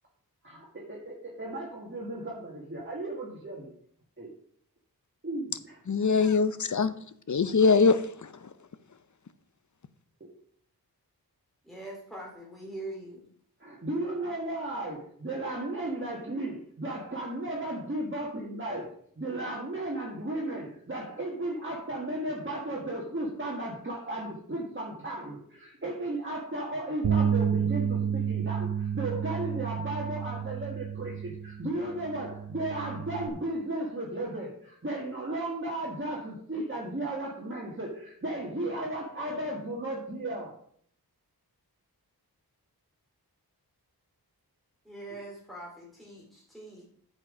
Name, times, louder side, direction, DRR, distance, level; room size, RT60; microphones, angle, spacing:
voice 1, 0.4-3.7 4.2-4.3 5.2-6.3 10.2-10.4 13.6-18.9 19.2-40.5, right 1 dB, 30° right, 1.8 m, -35 dB
voice 2, 5.9-6.9 7.3-8.3, left 4 dB, 50° left, 0.7 m, -23 dB
voice 3, 11.6-13.3 44.8-46.8, right 2 dB, ahead, 2.4 m, -43 dB
Bass guitar, 27.0-33.3, right 7 dB, 65° right, 1.0 m, -30 dB
8.8 x 7.2 x 5.1 m
wide cardioid pair, 75°, 39 cm